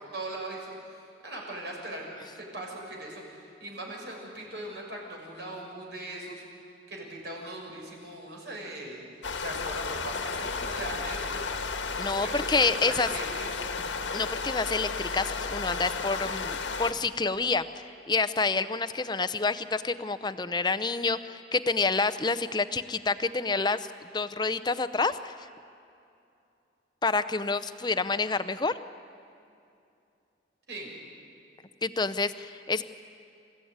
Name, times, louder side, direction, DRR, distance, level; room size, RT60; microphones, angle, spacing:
voice 1, 0.0-6.4 6.9-9.0 9.3-11.5 12.1-13.5 30.7-30.9, right 1 dB, 65° right, -1 dB, 6.4 m, -40 dB
sound 1, 9.2-16.9, left 4 dB, 80° left, 1.5 m, -33 dB
voice 2, 12.0-13.1 14.1-25.5 27.0-28.8 31.8-32.8, left 4 dB, 25° left, 12 dB, 0.6 m, -28 dB
28.5 x 15.5 x 9.5 m, 2.6 s
head